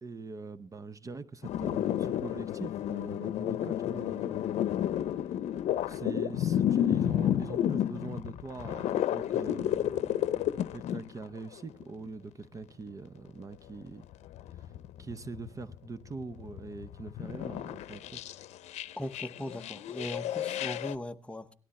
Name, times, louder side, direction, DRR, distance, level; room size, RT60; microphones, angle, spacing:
voice 1, 0.0-4.7 5.9-14.0 14.6-14.7 15.0-18.2, right 3 dB, 30° right, 0.7 m, -43 dB
sound 1, 1.4-11.1 11.4-12.1 14.0-15.8 16.1-20.9, left 11 dB, 80° left, 0.6 m, -31 dB
voice 2, 19.0-21.5, left 1 dB, 10° left, 0.8 m, -39 dB
18.0 x 12.5 x 4.2 m
cardioid pair, 105°, 11 cm